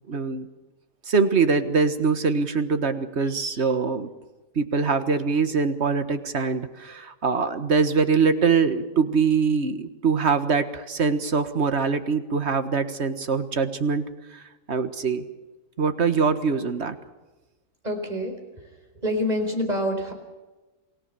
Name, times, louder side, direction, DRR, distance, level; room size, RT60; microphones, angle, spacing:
voice 1, 0.1-0.5 1.1-4.1 4.6-14.0 14.3-14.4 14.7-15.3 15.8-17.0, right 5 dB, 50° right, 9 dB, 1.7 m, -23 dB
voice 2, 17.8-18.7 19.0-20.1, equal, 25° right, 3 dB, 4.7 m, -27 dB
28.0 x 18.0 x 6.9 m, 1.1 s
omnidirectional pair, 1.6 m